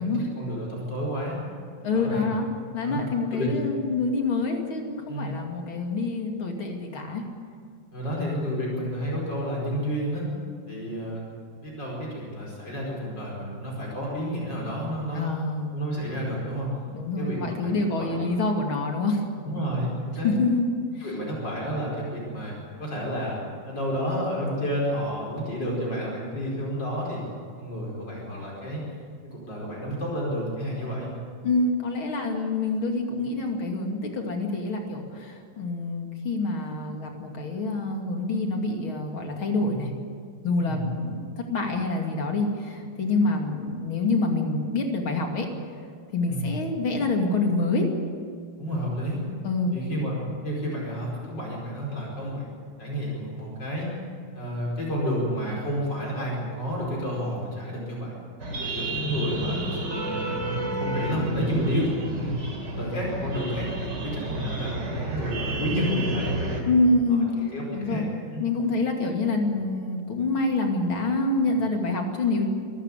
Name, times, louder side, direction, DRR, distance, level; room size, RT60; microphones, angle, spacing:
voice 1, 0.0-1.4 1.9-2.3 2.8-3.0 3.3-3.5 5.1-5.3 7.9-10.3 10.7-11.3 11.6-15.2 15.7-16.7 17.2-18.4 19.4-20.3 21.0-23.4 23.7-27.2 27.6-28.8 29.2-31.1 40.6-40.8 46.3-46.4 48.6-49.2 49.7-52.5 52.8-53.9 54.3-58.1 58.6-62.3 62.7-66.5 67.1-68.0 68.3-68.4, equal, 60° left, -4 dB, 5.7 m, -30 dB
voice 2, 1.8-2.5 2.7-7.2 15.1-15.7 16.9-19.2 20.2-20.7 20.9-21.1 31.4-39.9 40.4-45.5 46.1-47.9 49.4-49.8 58.9-59.6 66.7-68.1 68.4-72.5, left 3 dB, 85° left, 2 dB, 3.4 m, -26 dB
sound 1, 58.4-66.6, right 1 dB, 55° right, 3.9 m, -31 dB
24.5 x 13.5 x 9.8 m, 2.1 s
omnidirectional pair, 2.2 m